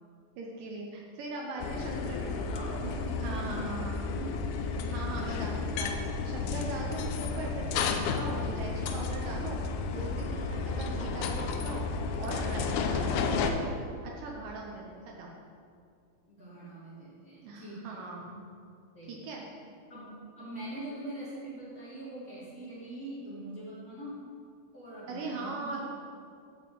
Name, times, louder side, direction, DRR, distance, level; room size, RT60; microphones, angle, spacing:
voice 1, 0.4-2.5 3.2-4.0 4.9-9.6 9.9-11.9 12.2-13.6 14.0-15.3 17.4-18.5 19.1-19.5 25.1-25.8, right 3 dB, 75° right, -1 dB, 2.4 m, -40 dB
sound 1, 1.6-13.5, left 4 dB, 85° left, 2.4 m, -32 dB
voice 2, 1.6-5.0 14.9-15.0 16.3-18.0 18.9-19.2 19.9-24.2 24.7-25.8, right 1 dB, 25° left, -10 dB, 2.6 m, -43 dB
8.4 x 5.6 x 7.5 m, 2.3 s
omnidirectional pair, 4.3 m